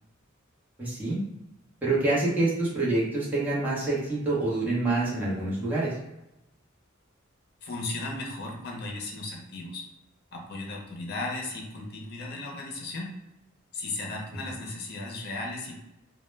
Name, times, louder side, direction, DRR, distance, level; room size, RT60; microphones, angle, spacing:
voice 1, 0.8-1.2 1.8-5.9, right 2 dB, 10° right, -8 dB, 0.8 m, -26 dB
voice 2, 7.6-9.8 10.3-13.1 13.7-15.8, left 2 dB, 50° left, 0 dB, 0.6 m, -36 dB
2.1 x 2.1 x 3.1 m, 0.91 s
head